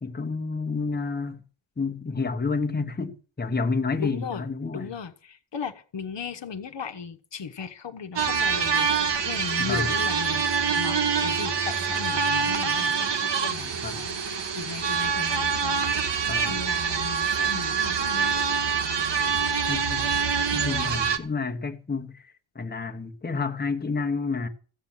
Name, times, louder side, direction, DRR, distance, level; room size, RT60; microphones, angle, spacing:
voice 1, 0.0-1.4 1.8-4.9 9.6-9.9 13.8-14.0 16.3-16.6 19.7-20.2 20.5-24.5, left 4 dB, 20° left, 1.2 m, -30 dB
voice 2, 4.0-4.5 4.7-18.4 20.5-21.2, left 6 dB, 60° left, 1.2 m, -37 dB
sound 1, 8.2-21.2, right 6 dB, 55° right, 1.5 m, -25 dB
15.0 x 8.1 x 7.3 m
wide cardioid pair, 160°, 49 cm